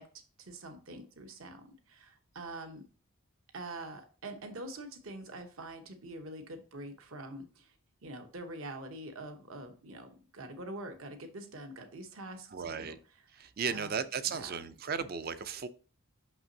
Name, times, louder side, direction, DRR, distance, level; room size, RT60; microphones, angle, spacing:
voice 1, 0.0-2.8 3.5-7.8 8.0-14.6, right 2 dB, 65° right, 6 dB, 1.0 m, -45 dB
voice 2, 12.5-13.0 13.4-15.7, right 6 dB, 40° right, 12 dB, 0.5 m, -35 dB
6.0 x 5.9 x 2.7 m, 0.36 s
head